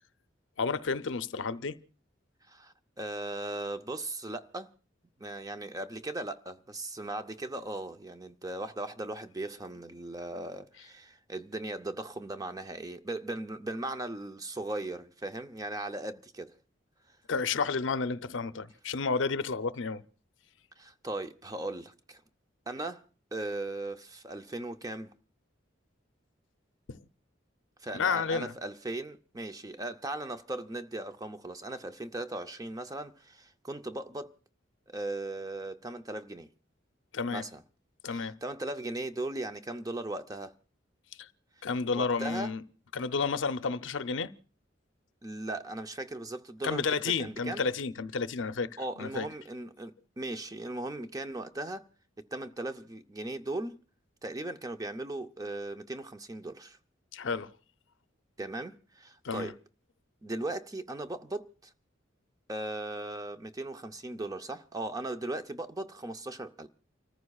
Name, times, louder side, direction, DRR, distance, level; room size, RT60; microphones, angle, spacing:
voice 1, 0.6-1.8 17.3-20.0 26.9-27.0 27.9-28.5 37.1-37.4 38.0-38.3 41.2-41.3 41.6-42.6 42.9-44.3 46.6-48.7 49.0-49.3 57.1-57.5 59.2-59.5, left 4 dB, 80° left, 0.6 m, -31 dB
voice 2, 2.5-4.7 5.2-16.5 20.8-22.2 22.7-23.0 23.3-25.1 27.8-34.3 34.9-36.5 37.3-37.6 38.1-40.5 41.6-41.7 41.9-42.5 45.2-47.6 48.8-51.8 52.3-53.8 54.2-56.8 58.4-59.6 60.2-61.7 62.5-66.7, right 2 dB, 20° right, 0.6 m, -38 dB
30.0 x 14.5 x 2.4 m
head